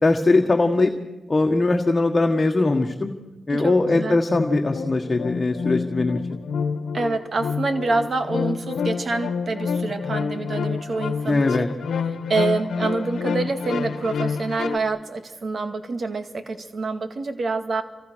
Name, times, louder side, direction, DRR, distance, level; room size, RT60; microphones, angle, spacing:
voice 1, 0.0-0.9 1.3-3.1 3.5-6.4 11.3-11.7, left 2 dB, 35° left, 3 dB, 1.6 m, -20 dB
voice 2, 3.5-4.2 6.9-11.7 12.0-17.8, right 3 dB, 60° right, 8 dB, 2.1 m, -27 dB
sound 1, 3.8-14.8, left 5 dB, 85° left, 1.2 m, -28 dB
28.5 x 25.0 x 6.4 m, 1.2 s
cardioid pair, 65°, 0 cm